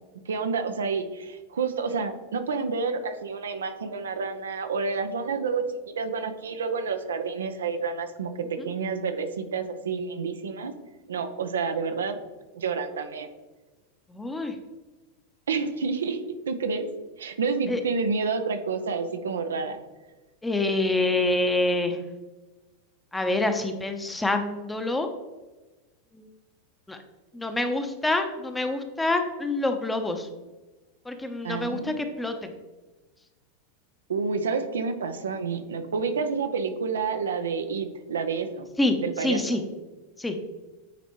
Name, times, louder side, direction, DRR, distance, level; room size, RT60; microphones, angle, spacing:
voice 1, 0.1-10.7 11.1-12.2 12.5-13.3 15.5-16.9 17.2-19.8 31.4-32.0 34.1-38.7 39.0-39.4, right 5 dB, 85° right, 8 dB, 0.6 m, -29 dB
voice 2, 14.1-14.5 17.7-17.8 20.4-22.0 23.1-25.1 26.9-27.0 27.3-30.3 31.1-32.5 38.8-38.9 39.2-39.6 40.2-40.3, left 2 dB, 10° left, 6 dB, 0.8 m, -26 dB
9.1 x 4.2 x 3.1 m, 1.2 s
hypercardioid pair, 105°, 0 cm